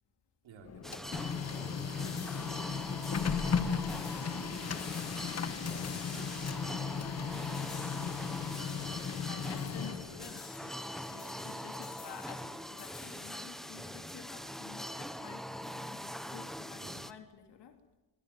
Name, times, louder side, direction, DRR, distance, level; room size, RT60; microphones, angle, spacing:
voice 1, 0.4-4.2 5.3-8.1 11.0-11.6 16.8-17.1, right 4 dB, 70° right, 4 dB, 5.0 m, -55 dB
Printer, 0.6-10.4, left 6 dB, 30° left, 1.3 m, -36 dB
sound 1, 0.8-17.1, equal, ahead, 0.8 m, -43 dB
sound 2, 1.5-14.9, left 10 dB, 80° left, 3.4 m, -55 dB
voice 2, 4.2-4.6 9.2-17.8, left 7 dB, 60° left, 6 dB, 3.3 m, -51 dB
24.0 x 20.5 x 9.4 m, 1.1 s
cardioid pair, 180°, 47 cm